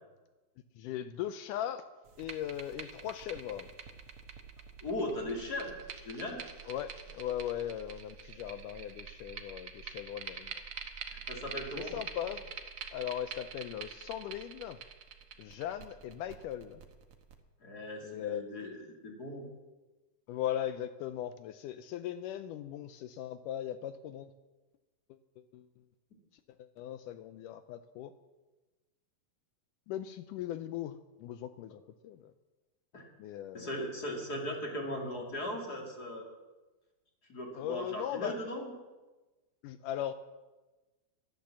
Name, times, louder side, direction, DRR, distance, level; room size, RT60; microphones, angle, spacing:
voice 1, 0.8-1.8 2.2-3.7 6.7-10.5 11.8-12.6 12.9-14.8 15.4-16.8 18.0-18.5 20.3-24.3 25.1-25.7 26.6-28.1 29.9-32.3 33.2-33.9 37.5-38.5 39.6-40.1, left 11 dB, 85° left, 11 dB, 1.9 m, -39 dB
sound 1, 2.1-17.3, right 7 dB, 70° right, 1.3 m, -46 dB
voice 2, 4.8-5.7 6.0-6.4 11.1-11.9 17.6-19.5 32.9-33.0 33.5-36.2 37.3-38.7, left 1 dB, 30° left, 0 dB, 2.4 m, -38 dB
12.0 x 12.0 x 7.3 m, 1.2 s
omnidirectional pair, 4.2 m